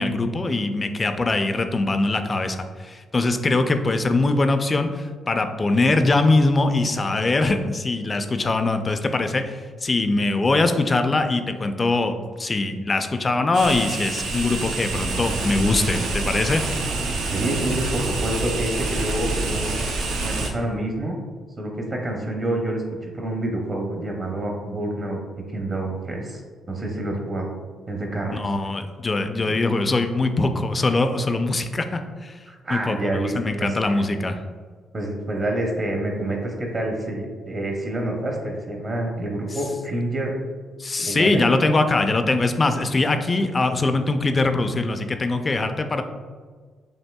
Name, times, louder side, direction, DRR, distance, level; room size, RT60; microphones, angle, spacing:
voice 1, 0.0-16.6 28.3-32.4 32.7-34.4 40.8-46.0, left 2 dB, 30° left, 7 dB, 0.4 m, -22 dB
sound 1, 13.5-20.5, right 3 dB, 90° right, 0.6 m, -27 dB
voice 2, 17.2-19.7 20.2-21.2 21.6-26.4 26.7-27.5 27.9-28.4 32.5-34.0 34.9-40.3 41.0-41.5, right 1 dB, 35° right, 0 dB, 0.7 m, -27 dB
5.4 x 3.0 x 2.2 m, 1.5 s
cardioid pair, 90°, 0 cm